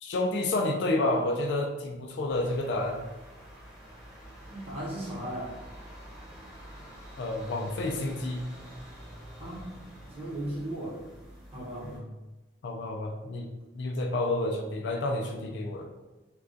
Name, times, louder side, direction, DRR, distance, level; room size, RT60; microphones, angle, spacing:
voice 1, 0.0-3.1 7.2-8.4 12.6-13.5 13.7-15.9, left 2 dB, 60° left, 2 dB, 0.3 m, -29 dB
sound 1, 2.3-12.0, equal, 20° left, 0.6 m, -48 dB
voice 2, 4.5-5.6 9.4-9.8 10.1-11.0 11.5-12.1, right 1 dB, 30° right, -7 dB, 0.8 m, -36 dB
2.2 x 2.2 x 2.5 m, 1.1 s
head